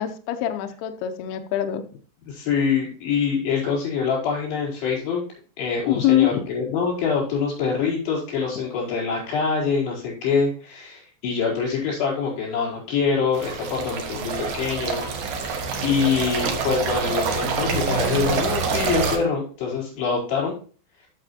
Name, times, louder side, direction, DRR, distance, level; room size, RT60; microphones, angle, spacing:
voice 1, 0.0-1.8 5.9-6.5, left 12 dB, 80° left, 7 dB, 2.3 m, -23 dB
voice 2, 2.3-5.2 5.6-15.1 15.4-20.5, left 5 dB, 60° left, -3 dB, 6.8 m, -25 dB
sound 1, 13.3-19.2, right 5 dB, 70° right, 1.8 m, -26 dB
14.0 x 7.1 x 2.8 m, 0.40 s
omnidirectional pair, 5.4 m